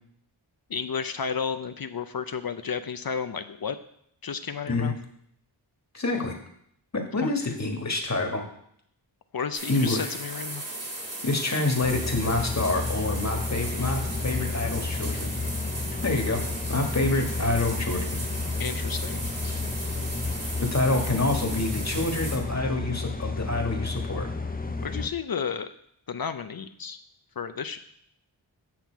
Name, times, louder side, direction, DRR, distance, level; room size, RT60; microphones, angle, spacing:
voice 1, 0.7-3.8 4.2-4.9 7.2-7.3 9.3-10.6 18.6-19.2 24.8-25.7 26.1-27.0 27.4-27.8, left 6 dB, 50° left, 10 dB, 0.5 m, -32 dB
voice 2, 5.9-6.4 6.9-8.4 9.7-10.1 11.2-15.3 16.0-16.4 16.7-18.1 20.6-24.3, left 2 dB, 35° left, 2 dB, 1.6 m, -27 dB
sound 1, 9.5-22.4, right 2 dB, 35° right, 2.1 m, -37 dB
sound 2, 11.8-25.1, left 3 dB, 20° left, 0.7 m, -31 dB
9.3 x 5.8 x 4.5 m, 0.69 s
wide cardioid pair, 65°, 46 cm